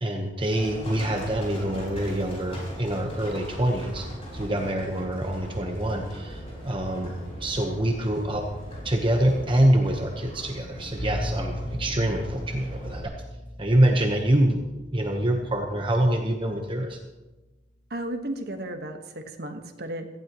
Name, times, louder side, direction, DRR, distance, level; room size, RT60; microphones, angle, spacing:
voice 1, 0.0-4.1 4.3-7.1 7.4-8.5 8.8-13.1 13.6-14.6 14.9-17.0, right 1 dB, 30° right, 2 dB, 1.1 m, -25 dB
Livestock farm animals working animals, 0.5-13.0, equal, 35° left, 5.5 m, -39 dB
voice 2, 7.1-7.4 17.9-20.1, right 1 dB, 60° right, 5 dB, 1.4 m, -35 dB
sound 1, 11.0-16.8, equal, 65° left, 2.7 m, -37 dB
18.0 x 15.0 x 3.1 m, 1.1 s
head